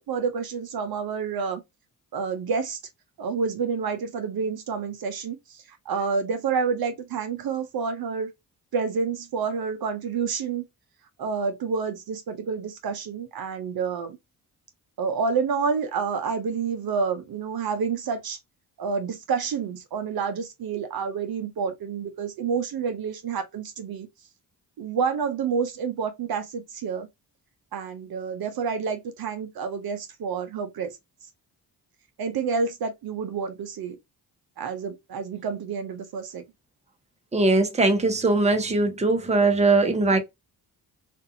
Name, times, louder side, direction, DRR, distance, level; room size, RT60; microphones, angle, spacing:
voice 1, 0.1-1.6 2.1-2.8 3.2-5.4 5.9-8.3 8.7-10.6 11.2-14.2 15.0-18.4 18.8-24.1 24.8-27.1 27.7-30.9 32.2-34.0 34.6-36.4, right 5 dB, 55° right, 0.6 m, -28 dB
voice 2, 37.3-40.2, right 2 dB, 15° right, 0.7 m, -20 dB
2.6 x 2.4 x 2.6 m
supercardioid pair, 50°, 43 cm